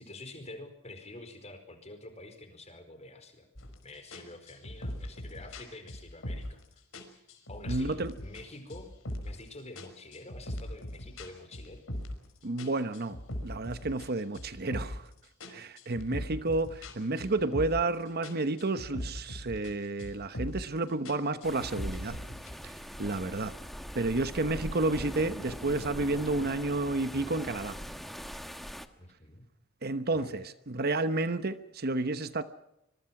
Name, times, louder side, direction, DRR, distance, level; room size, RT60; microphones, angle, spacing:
voice 1, 0.0-3.5 3.8-6.8 7.5-8.9 9.2-11.8 29.0-29.4 30.1-30.4, left 2 dB, 30° left, 4.8 m, -47 dB
sound 1, 3.6-3.8 4.1-6.6 6.9-8.4 8.7-9.4 9.8-12.3 12.6-15.1 15.4-18.0 18.2-19.7 20.0-20.7 21.1-22.5, left 1 dB, 65° left, 4.8 m, -40 dB
voice 2, 7.7-8.1 12.4-15.1 15.5-22.2 22.6-23.5 23.9-27.8 29.8-32.4, right 2 dB, 50° right, 1.0 m, -31 dB
sound 2, 21.4-28.9, equal, ahead, 1.3 m, -42 dB
25.5 x 22.5 x 6.0 m
head